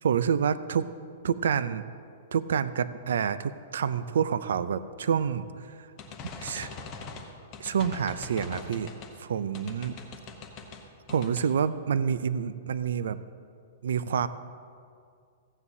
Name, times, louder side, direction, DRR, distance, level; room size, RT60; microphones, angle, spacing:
voice 1, 0.0-0.9 1.2-1.8 2.3-5.9 6.4-6.7 7.6-8.9 9.2-10.0 11.1-13.2 13.8-14.3, right 7 dB, 80° right, 15 dB, 0.4 m, -28 dB
sound 1, 6.0-9.2 9.5-10.8 11.1-11.5, left 4 dB, 20° left, 0.8 m, -42 dB
15.5 x 9.6 x 2.7 m, 2.3 s
hypercardioid pair, 180°, 0 cm